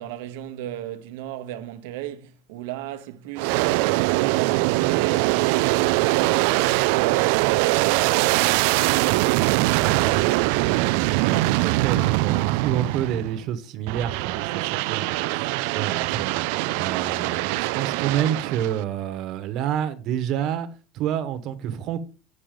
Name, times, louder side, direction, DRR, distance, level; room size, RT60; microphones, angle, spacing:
voice 1, 0.0-9.0, right 12 dB, 90° right, 0.9 m, -35 dB
Aircraft, 3.4-13.4 13.9-18.8, right 20 dB, 70° right, 0.3 m, -22 dB
voice 2, 9.7-16.4 16.7-20.7 20.9-22.0, right 10 dB, 45° right, 1.1 m, -29 dB
7.7 x 6.4 x 5.0 m
cardioid pair, 175°, 0 cm